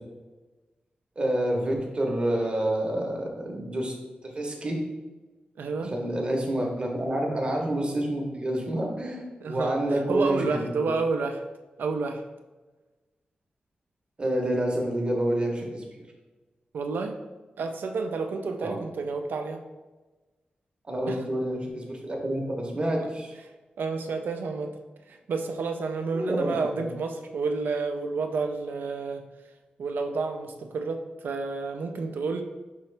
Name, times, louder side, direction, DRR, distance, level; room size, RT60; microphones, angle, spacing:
voice 1, 1.2-3.9 4.3-4.8 5.8-10.6 14.2-16.0 18.6-18.8 20.9-23.3 26.1-26.8, right 1 dB, 30° right, 0 dB, 0.8 m, -28 dB
voice 2, 5.6-5.9 9.4-11.4 11.8-12.2 16.7-17.2 17.6-19.6 21.1-21.3 23.8-24.8 25.1-29.2 29.8-32.4, right 4 dB, 80° right, 5 dB, 0.4 m, -30 dB
5.4 x 2.9 x 3.2 m, 1.2 s
wide cardioid pair, 130°, 3 cm